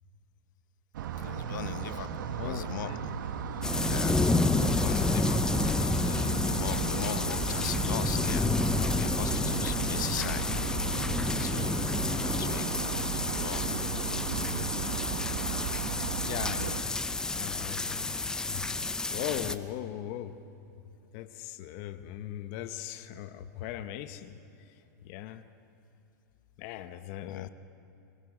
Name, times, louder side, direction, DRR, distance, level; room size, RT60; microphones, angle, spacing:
sound 1, 0.9-16.8, right 7 dB, 75° right, 1.2 m, -35 dB
voice 1, 1.2-2.9 3.5-4.2 4.5-10.4 11.4-11.8 12.2-14.3 27.2-27.5, left 12 dB, 75° left, 13 dB, 0.7 m, -40 dB
voice 2, 2.4-3.1 16.3-16.8 17.3-20.4 21.1-24.4 25.0-25.4 26.6-27.5, left 12 dB, 45° left, 10 dB, 0.9 m, -39 dB
sound 2, 3.6-19.6, left 3 dB, 5° left, 0.5 m, -30 dB
24.5 x 22.5 x 5.0 m, 2.8 s
supercardioid pair, 145°, 10 cm